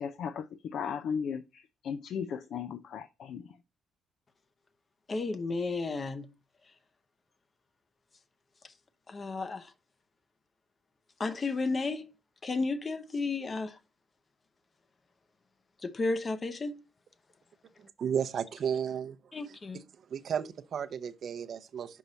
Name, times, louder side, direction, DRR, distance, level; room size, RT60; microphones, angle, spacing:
voice 1, 0.0-3.4, left 7 dB, 70° left, 0.4 m, -36 dB
voice 2, 5.1-6.3 9.1-9.6 11.2-12.0 12.4-13.7 15.8-16.7 19.3-19.8, left 3 dB, 35° left, 0.8 m, -32 dB
voice 3, 18.0-19.2 19.5-19.8 20.1-22.0, right 8 dB, 55° right, 0.6 m, -33 dB
5.4 x 4.6 x 4.0 m
cardioid pair, 90°, 0 cm